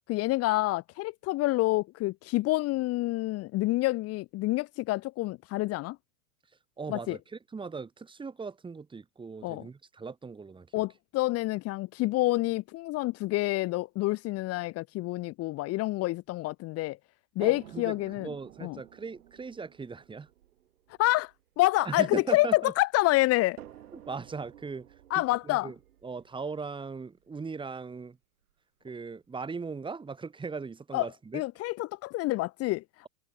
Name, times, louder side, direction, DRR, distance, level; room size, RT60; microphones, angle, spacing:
voice 1, 0.1-6.0 6.9-7.2 9.4-9.7 10.7-17.0 17.4-18.3 18.6-18.8 21.0-21.3 21.6-23.6 25.1-25.7 30.9-31.1 31.3-33.1, left 19 dB, 35° left, 2.1 m, -28 dB
voice 2, 6.8-10.8 17.4-20.3 21.8-22.7 23.9-24.9 25.2-25.8 26.0-28.2 28.8-31.4, right 4 dB, 10° right, 6.0 m, -39 dB
sound 1, 17.4-22.6 23.6-27.5 28.5-28.6 29.0-29.1, right 12 dB, 90° right, 7.7 m, -53 dB
supercardioid pair, 150°, 43 cm